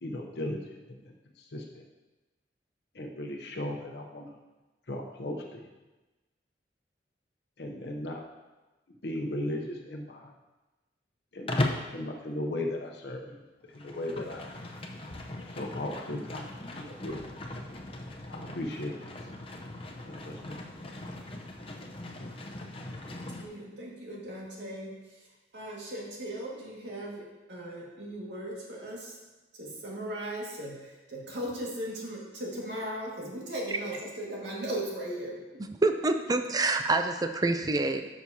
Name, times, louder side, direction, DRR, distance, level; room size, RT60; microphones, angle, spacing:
voice 1, 0.0-1.8 2.9-4.4 4.9-5.6 7.6-8.2 9.0-10.3 11.3-13.4 13.7-14.5 15.5-17.3 18.3-19.0 20.0-20.7, left 1 dB, 65° left, 1 dB, 0.8 m, -37 dB
Livestock farm animals working animals, 11.5-11.9 13.6-23.5, left 1 dB, 30° left, 0.7 m, -38 dB
voice 2, 23.3-24.9 25.5-29.2 29.6-35.6, right 1 dB, 75° right, -3 dB, 1.9 m, -38 dB
voice 3, 35.8-38.0, right 2 dB, 20° right, 7 dB, 0.5 m, -26 dB
12.0 x 6.1 x 2.8 m, 1.1 s
head